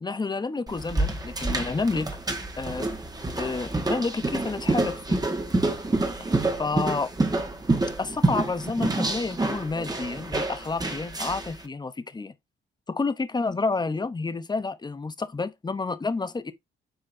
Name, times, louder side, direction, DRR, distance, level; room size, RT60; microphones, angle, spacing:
voice 1, 0.0-2.2 2.6-2.9 3.4-5.2 6.2-7.1 8.0-12.3 12.9-16.5, left 3 dB, 20° left, 0.9 m, -30 dB
sound 1, 0.7-11.6, right 2 dB, 20° right, 1.7 m, -28 dB
7.7 x 4.6 x 2.8 m
cardioid pair, 90°, 20 cm